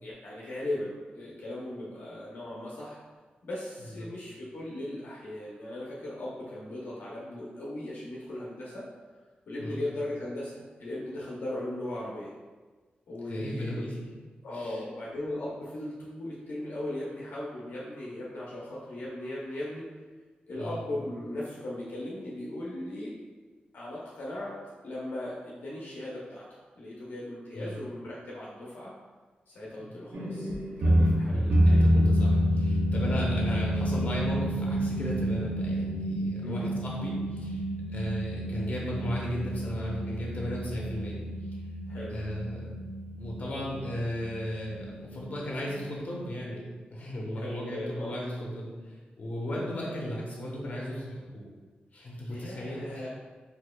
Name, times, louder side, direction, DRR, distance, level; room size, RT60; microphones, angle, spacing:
voice 1, 0.0-3.0 3.4-8.9 9.5-12.3 13.1-13.9 14.4-19.9 20.5-23.1 23.7-24.6 24.8-26.5 26.8-28.9 29.5-30.5 30.8-31.9 36.4-36.7 41.9-42.2 47.3-48.2 52.3-53.1, left 1 dB, 75° left, -6 dB, 0.6 m, -38 dB
voice 2, 13.3-14.1 14.5-14.8 20.6-20.8 27.5-27.8 29.8-29.9 31.3-41.2 42.1-42.7 43.2-46.7 46.9-51.4 51.9-53.1, equal, 45° left, -3 dB, 0.9 m, -35 dB
sound 1, 30.1-46.3, equal, 70° right, 0.5 m, -28 dB
4.2 x 2.8 x 2.2 m, 1.4 s
wide cardioid pair, 110°, 3 cm